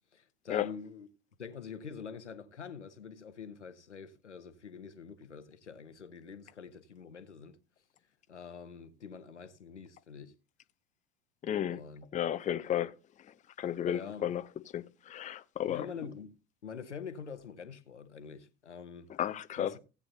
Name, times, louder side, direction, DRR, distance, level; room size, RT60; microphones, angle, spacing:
voice 1, 0.1-1.1 1.4-7.6 8.3-10.3 11.7-12.0 13.8-14.3 15.7-16.3 16.6-19.1 19.6-19.8, left 6 dB, 90° left, 1.1 m, -45 dB
voice 2, 11.4-11.8 12.1-12.9 13.6-14.4 14.7-15.9 19.2-19.7, left 10 dB, 20° left, 0.6 m, -33 dB
16.5 x 8.5 x 2.7 m
figure-of-eight pair, 80°, 34 cm